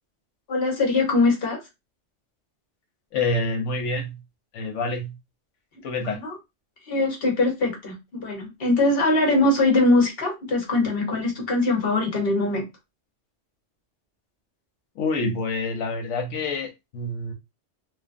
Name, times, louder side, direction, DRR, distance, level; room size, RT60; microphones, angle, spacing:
voice 1, 0.5-1.6 6.1-6.3 6.9-12.7, left 2 dB, 55° left, 1.1 m, -22 dB
voice 2, 3.1-4.2 4.5-5.2 5.8-6.2 15.0-17.3, left 2 dB, 85° left, 1.0 m, -27 dB
3.1 x 2.0 x 2.5 m
omnidirectional pair, 1.2 m